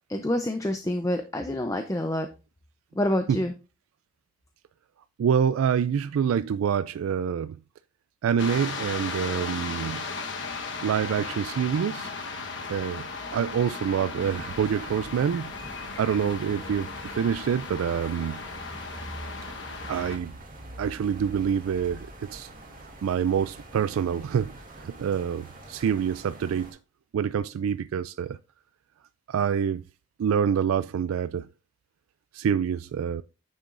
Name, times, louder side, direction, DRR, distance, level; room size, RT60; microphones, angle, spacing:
voice 1, 0.1-2.3 3.0-3.5, left 1 dB, 15° left, 0.5 m, -27 dB
voice 2, 5.2-7.6 8.2-10.0 10.8-12.1 12.7-13.1 13.3-15.5 16.0-18.4 19.9-20.3 20.8-22.5 23.0-26.8 27.1-28.4 29.3-29.8 30.2-31.5 32.3-33.2, right 7 dB, 85° right, 0.3 m, -26 dB
sound 1, 8.4-20.2, left 4 dB, 60° left, 1.1 m, -36 dB
sound 2, 14.2-26.7, right 1 dB, 40° right, 2.3 m, -45 dB
9.6 x 7.0 x 2.5 m
head